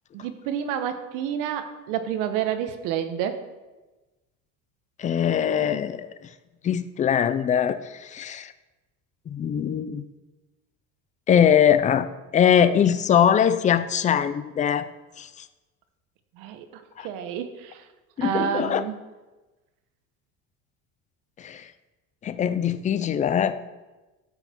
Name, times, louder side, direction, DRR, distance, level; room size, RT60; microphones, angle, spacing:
voice 1, 0.1-3.4 16.4-17.8 18.2-18.9, right 9 dB, 75° right, 9 dB, 1.2 m, -29 dB
voice 2, 5.0-6.1 6.6-8.5 9.3-10.0 11.3-12.1 12.3-14.9 15.2-15.5 17.0-17.1 18.2-18.8 21.4-21.7 22.2-23.7, left 8 dB, 25° left, 12 dB, 0.4 m, -22 dB
13.0 x 8.2 x 4.4 m, 1.2 s
cardioid pair, 155°, 33 cm